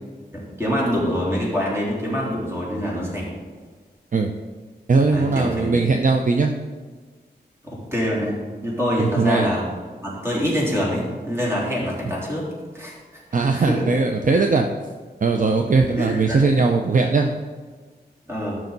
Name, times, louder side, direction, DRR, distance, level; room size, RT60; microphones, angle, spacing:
voice 1, 0.3-3.3 5.1-5.8 7.6-8.4 8.6-9.6 10.0-12.5 12.7-13.2 13.5-13.8 16.0-16.6 18.3-18.6, equal, 15° right, -5 dB, 3.3 m, -25 dB
voice 2, 4.9-6.5 9.0-9.5 13.3-14.7 15.2-17.3, right 4 dB, 50° right, 3 dB, 0.6 m, -19 dB
13.5 x 6.3 x 4.0 m, 1.5 s
wide cardioid pair, 110°, 17 cm